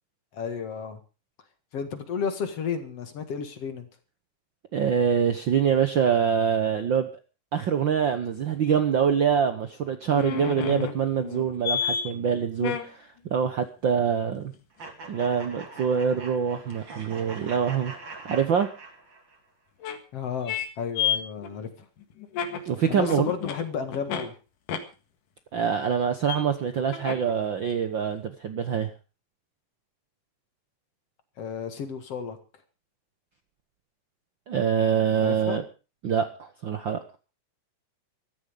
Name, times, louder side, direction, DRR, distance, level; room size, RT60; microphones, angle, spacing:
voice 1, 0.3-1.0 1.7-3.9 20.1-21.7 22.9-24.4 31.4-32.4 35.2-35.6, left 6 dB, 50° left, 9 dB, 2.6 m, -32 dB
voice 2, 4.7-7.1 7.5-14.5 15.1-17.9 18.3-18.7 22.6-23.3 25.5-28.9 34.5-35.6 36.0-37.0, right 7 dB, 70° right, 9 dB, 1.1 m, -25 dB
sound 1, 10.1-12.0 12.6-12.9 16.7-16.8 18.4-18.5 19.8-20.0 20.5-20.7 21.0-24.3 24.7-24.8 26.3-26.4 26.9-27.3 27.7-27.8, left 8 dB, 80° left, 3.3 m, -30 dB
sound 2, 14.8-19.4, right 3 dB, 35° right, 3.3 m, -43 dB
15.0 x 14.0 x 5.2 m, 0.34 s
omnidirectional pair, 3.7 m